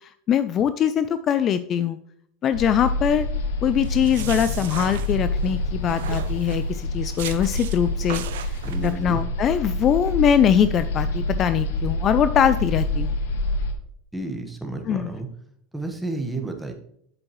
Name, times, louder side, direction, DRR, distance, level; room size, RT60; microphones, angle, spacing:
voice 1, 0.0-2.0 2.4-3.3 3.6-13.1 14.9-15.1, left 9 dB, 35° left, 13 dB, 0.4 m, -22 dB
sound 1, 2.5-13.7, left 1 dB, 85° left, 1.0 m, -27 dB
sound 2, 3.8-5.5 5.9-6.7 7.2-7.8 8.1-8.9, right 11 dB, 85° right, 0.6 m, -36 dB
voice 2, 8.6-9.2 14.1-15.3 15.7-16.7, right 2 dB, 5° right, 4 dB, 1.3 m, -31 dB
7.8 x 7.3 x 3.1 m, 0.68 s
supercardioid pair, 125°, 0 cm